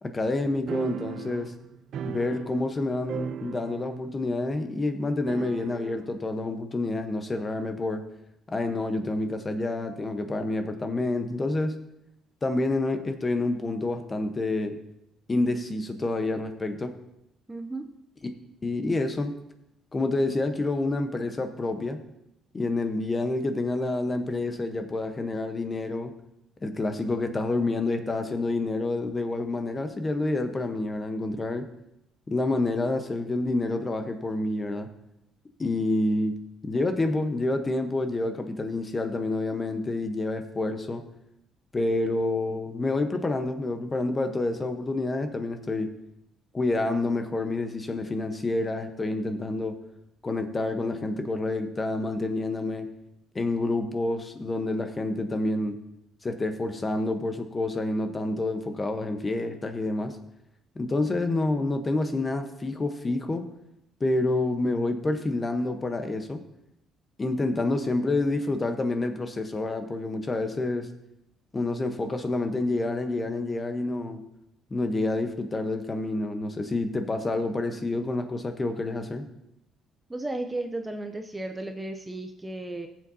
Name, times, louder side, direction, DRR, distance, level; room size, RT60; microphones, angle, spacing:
voice 1, 0.0-1.5 2.0-8.0 8.5-11.8 12.4-14.8 15.3-16.9 18.2-18.3 18.6-19.3 19.9-22.0 22.5-26.1 26.6-31.7 32.3-34.9 35.6-36.4 36.6-41.0 41.7-45.9 46.5-49.8 50.2-52.9 53.3-55.8 56.2-60.2 60.8-63.4 64.0-66.4 67.2-70.9 71.5-74.2 74.7-79.3, left 2 dB, 20° left, 7 dB, 1.0 m, -28 dB
sound 1, 0.7-2.8 3.1-4.1 4.3-4.4 5.3-6.1, right 9 dB, 60° right, 0.4 m, -37 dB
voice 2, 17.5-17.9 80.1-82.9, right 2 dB, 10° right, 5 dB, 0.6 m, -34 dB
17.5 x 7.5 x 2.8 m, 0.83 s
cardioid pair, 125°, 0 cm